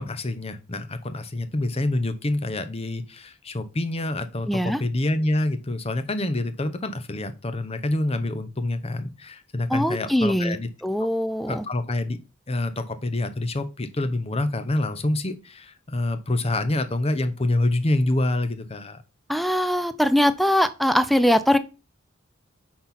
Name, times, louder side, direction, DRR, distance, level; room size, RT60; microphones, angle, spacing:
voice 1, 0.0-10.7 11.5-12.2 12.5-19.0, left 2 dB, 30° left, 11 dB, 0.7 m, -27 dB
voice 2, 4.5-4.8 9.7-10.6 10.8-11.7 19.3-21.6, equal, ahead, 12 dB, 0.5 m, -21 dB
5.7 x 4.3 x 5.8 m, 0.30 s
head